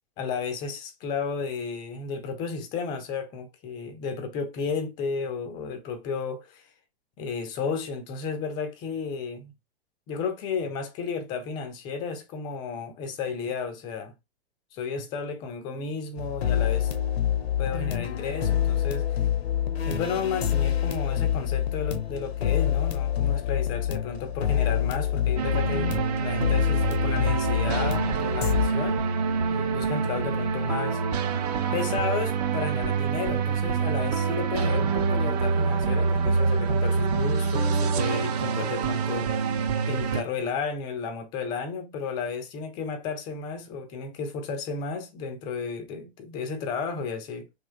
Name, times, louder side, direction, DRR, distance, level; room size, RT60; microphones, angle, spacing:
voice 1, 0.2-6.6 7.2-9.5 10.1-14.1 14.7-16.9 17.6-19.2 19.9-25.9 26.2-29.1 29.5-31.0 31.7-39.5 39.9-47.5, left 5 dB, 15° left, 0.3 m, -33 dB
sound 1, 16.2-28.7, left 10 dB, 75° left, 0.5 m, -26 dB
sound 2, 25.4-40.2, right 5 dB, 40° right, 0.5 m, -26 dB
3.2 x 2.3 x 2.2 m
figure-of-eight pair, 110°, 31 cm